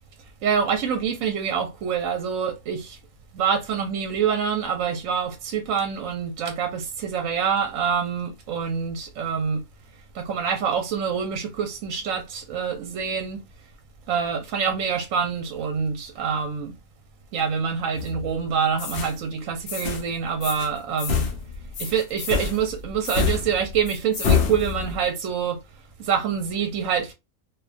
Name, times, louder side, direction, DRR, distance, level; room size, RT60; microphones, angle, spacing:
voice 1, 0.4-3.0 3.3-9.6 10.1-13.4 14.1-16.8 17.3-21.3 21.8-25.6 26.0-27.1, right 7 dB, 70° right, 0.9 m, -26 dB
sound 1, 17.9-18.4 18.8-19.1 19.7-20.1 20.4-20.7 21.0-25.1, left 6 dB, 75° left, 0.5 m, -27 dB
2.4 x 2.2 x 2.4 m
omnidirectional pair, 1.6 m